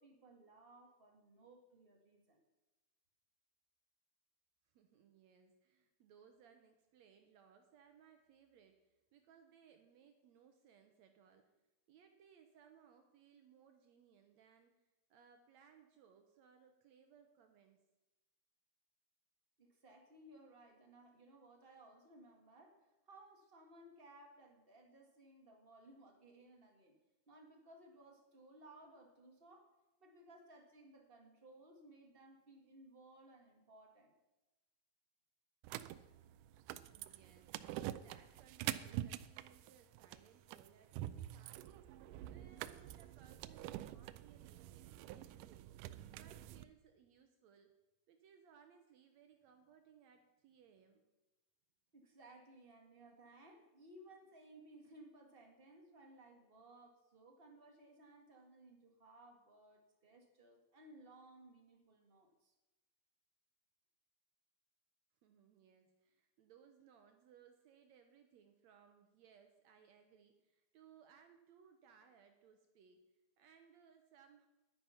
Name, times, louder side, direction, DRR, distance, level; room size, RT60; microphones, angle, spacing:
voice 1, 0.0-2.4 19.6-27.0 27.3-29.7 30.0-34.1 51.9-62.5, right 1 dB, 30° right, 2 dB, 1.1 m, -61 dB
voice 2, 4.7-11.5 11.9-14.8 15.1-17.9 36.8-45.8 46.1-47.8 48.1-51.1 65.2-73.0 73.4-74.5, right 7 dB, 70° right, 6 dB, 1.9 m, -66 dB
sound 1, 35.6-46.6, right 14 dB, 85° right, 2.1 m, -46 dB
11.0 x 10.0 x 5.7 m, 1.1 s
omnidirectional pair, 3.6 m